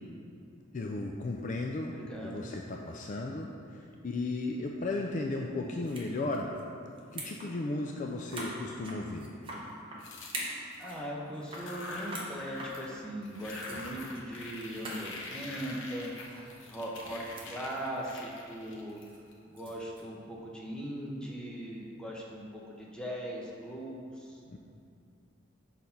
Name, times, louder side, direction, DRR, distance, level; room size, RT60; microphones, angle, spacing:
voice 1, 0.7-1.9 2.2-3.5 4.0-6.5 7.1-9.3 24.5-24.6, left 2 dB, 40° left, 1 dB, 0.4 m, -35 dB
voice 2, 1.9-2.5 10.4-19.0 19.5-24.4, equal, 5° left, -3 dB, 0.8 m, -40 dB
sound 1, 5.8-6.1 6.3-6.6 7.0-7.5 7.8-7.9 8.3-10.0 10.3-11.1 11.3-12.3 12.6-12.7 13.3-13.4 13.6-13.8 14.1-14.3 14.5-14.6 14.8-15.0 16.0-16.5 16.9-17.5 17.9-18.1 19.1-20.0, right 2 dB, 25° right, 1.0 m, -42 dB
sound 2, 10.0-11.0 11.4-13.0 13.2-19.6, left 2 dB, 75° left, 0.9 m, -45 dB
6.5 x 4.0 x 5.6 m, 2.4 s
head